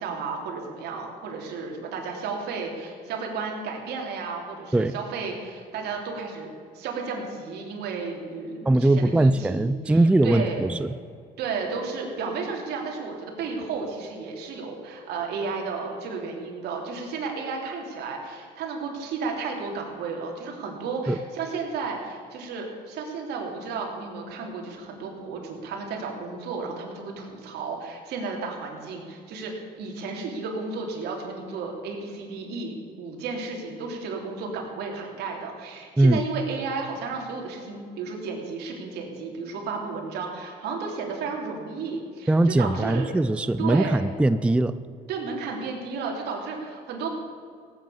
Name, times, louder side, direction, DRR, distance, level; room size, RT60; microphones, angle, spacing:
voice 1, 0.0-6.5 6.7-10.7 11.4-29.5 29.8-43.1 43.6-44.0 45.1-47.1, right 4 dB, 75° right, 1 dB, 3.3 m, -33 dB
voice 2, 8.7-10.9 21.1-21.2 36.0-36.2 42.3-44.8, right 2 dB, 5° right, 13 dB, 0.4 m, -21 dB
17.0 x 9.3 x 7.0 m, 2.2 s
cardioid pair, 110°, 17 cm